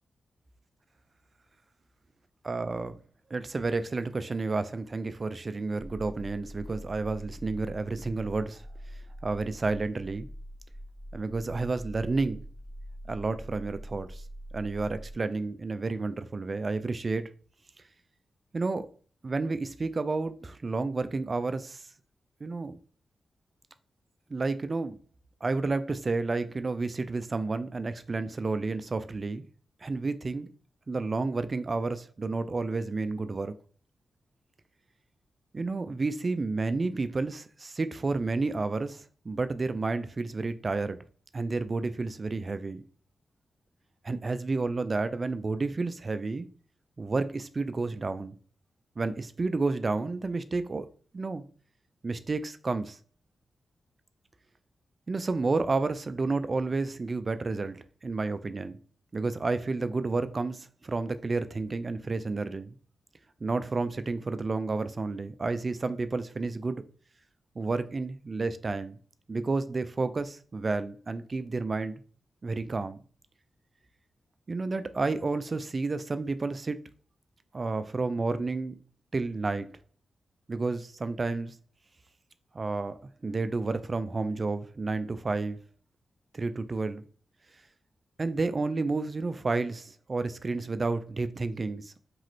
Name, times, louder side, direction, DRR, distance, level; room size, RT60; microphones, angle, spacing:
voice 1, 2.5-2.9 3.3-8.6 9.2-10.3 11.1-12.4 13.1-14.2 14.5-17.2 18.5-18.9 19.2-21.8 22.4-22.8 24.3-25.0 25.4-29.5 29.8-30.5 30.9-33.5 35.5-41.0 41.3-42.8 44.0-46.5 47.0-48.3 49.0-50.9 51.1-51.4 52.0-53.0 55.1-58.8 59.1-62.8 63.4-66.8 67.6-69.0 69.3-72.0 72.4-73.0 74.5-76.8 77.5-78.8 79.1-79.7 80.5-81.5 82.5-83.0 83.2-85.6 86.3-87.0 88.2-91.9, right 3 dB, 45° right, 0.3 m, -31 dB
sound 1, 5.8-15.1, equal, 20° left, 1.1 m, -44 dB
3.0 x 2.4 x 3.0 m
cardioid pair, 50°, 0 cm